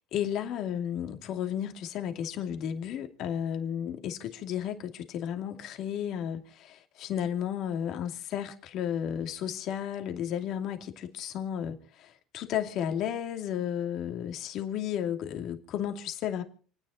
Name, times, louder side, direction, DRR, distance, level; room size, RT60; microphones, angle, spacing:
voice 1, 0.0-16.4, left 9 dB, 60° left, 2.6 m, -33 dB
28.5 x 10.0 x 4.3 m
cardioid pair, 125°, 0 cm